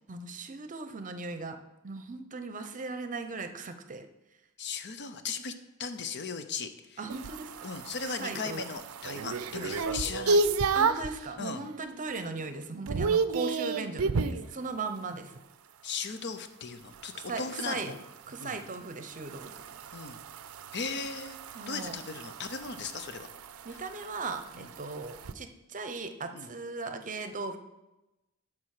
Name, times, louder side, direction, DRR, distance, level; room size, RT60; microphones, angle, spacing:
voice 1, 0.1-1.6 1.8-4.1 7.0-7.7 8.0-8.6 10.7-15.4 17.1-17.9 18.3-19.6 21.5-22.0 23.6-27.6, right 4 dB, 35° right, 8 dB, 0.7 m, -38 dB
voice 2, 4.6-7.0 7.6-10.9 11.4-11.7 15.8-18.0 18.4-18.6 19.9-20.2 20.7-21.4 21.7-23.3 23.7-23.8 24.5-24.7 26.3-26.5, left 5 dB, 55° left, 9 dB, 0.7 m, -37 dB
sound 1, 7.1-11.2 11.7-12.1 12.4-14.5 16.9-25.3, right 4 dB, 75° right, 0.5 m, -32 dB
10.0 x 6.0 x 4.9 m, 0.99 s
head